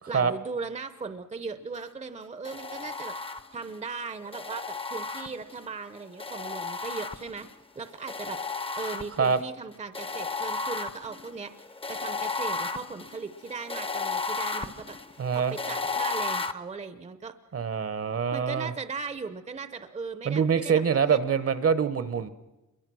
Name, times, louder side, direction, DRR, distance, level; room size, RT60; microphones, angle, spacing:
voice 1, 0.1-7.5 7.8-8.4 8.8-11.5 11.9-15.0 15.3-17.3 18.3-21.2, right 4 dB, 25° right, 11 dB, 0.7 m, -38 dB
sound 1, 2.5-3.7 4.3-5.7 6.2-7.5 8.1-9.4 9.9-16.5, left 4 dB, 20° left, 0.7 m, -34 dB
voice 2, 15.2-15.6 17.5-18.7 20.2-22.3, right 6 dB, 50° right, 14 dB, 0.9 m, -25 dB
27.5 x 22.0 x 6.2 m, 1.1 s
wide cardioid pair, 160°, 30 cm